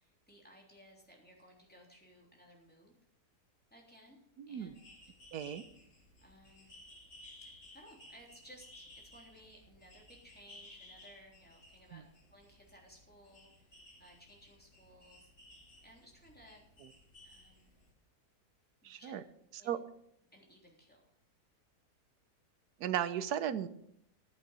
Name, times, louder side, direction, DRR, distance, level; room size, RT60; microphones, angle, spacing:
voice 1, 0.0-2.9 3.7-4.2 4.5-4.8 6.2-6.9 7.4-12.0 12.3-15.3 15.8-16.6 17.2-17.7 18.8-19.2 19.6-19.8 20.3-21.1, equal, 5° left, -1 dB, 3.4 m, -59 dB
sound 1, 4.6-17.9, left 1 dB, 45° left, 3.0 m, -58 dB
voice 2, 5.3-5.6 11.9-12.0 18.8-19.2 19.6-19.8 22.8-23.7, right 10 dB, 70° right, 13 dB, 1.3 m, -35 dB
10.5 x 9.7 x 6.8 m, 0.74 s
omnidirectional pair, 1.8 m